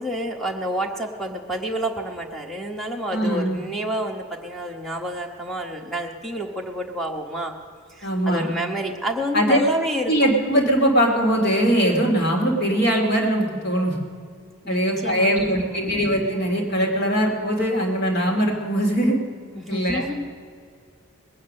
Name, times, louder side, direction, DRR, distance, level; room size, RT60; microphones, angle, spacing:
voice 1, 0.0-7.5 7.9-10.1 14.6-15.9 19.5-20.3, equal, ahead, 2 dB, 1.1 m, -29 dB
voice 2, 3.1-3.6 8.0-8.5 9.3-9.6 10.1-13.9 14.7-19.2 19.7-20.1, equal, 45° left, 1 dB, 2.4 m, -21 dB
20.5 x 9.0 x 6.5 m, 2.1 s
head